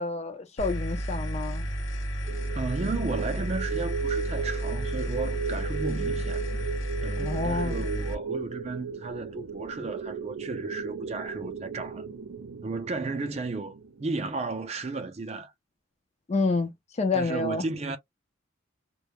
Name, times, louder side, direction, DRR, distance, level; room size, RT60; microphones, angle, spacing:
voice 1, 0.0-1.7 7.2-7.9 16.3-16.7 17.0-17.6, left 3 dB, 30° left, 0.4 m, -28 dB
sound 1, 0.6-8.1, right 1 dB, 65° left, 0.7 m, -32 dB
sound 2, 2.3-14.5, right 5 dB, 85° right, 0.5 m, -36 dB
voice 2, 2.5-6.5 7.0-12.0 12.6-15.5 17.1-18.0, right 3 dB, 30° right, 0.4 m, -34 dB
2.2 x 2.0 x 2.8 m
head